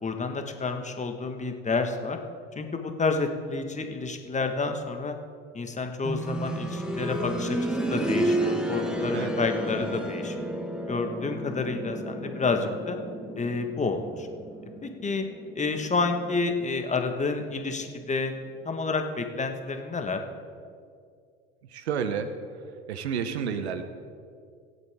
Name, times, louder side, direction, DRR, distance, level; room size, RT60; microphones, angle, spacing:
voice 1, 0.0-2.2 2.5-5.1 5.5-10.5 10.9-13.0 13.4-14.3 14.8-15.2 15.5-18.3 18.6-20.2, left 4 dB, 20° left, 5 dB, 1.6 m, -29 dB
sound 1, 6.0-16.8 18.2-18.3, right 1 dB, ahead, 1.5 m, -31 dB
voice 2, 21.7-22.3 22.9-23.8, right 7 dB, 90° right, 10 dB, 1.0 m, -30 dB
24.5 x 8.3 x 3.6 m, 2.3 s
hypercardioid pair, 75°, 31 cm